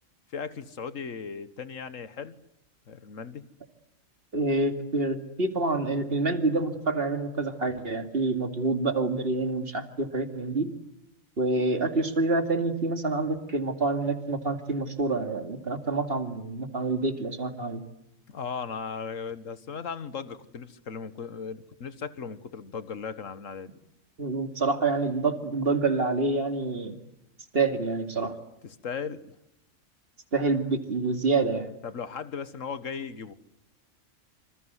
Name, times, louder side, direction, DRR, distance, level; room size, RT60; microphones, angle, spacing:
voice 1, 0.3-2.4 2.9-3.5 18.3-23.7 28.6-29.3 31.8-33.3, left 6 dB, 80° left, 13 dB, 1.8 m, -37 dB
voice 2, 4.3-10.7 11.4-17.8 24.2-27.0 27.5-28.4 30.3-31.7, right 3 dB, 50° right, 7 dB, 2.6 m, -27 dB
27.5 x 26.0 x 8.1 m, 0.82 s
omnidirectional pair, 1.3 m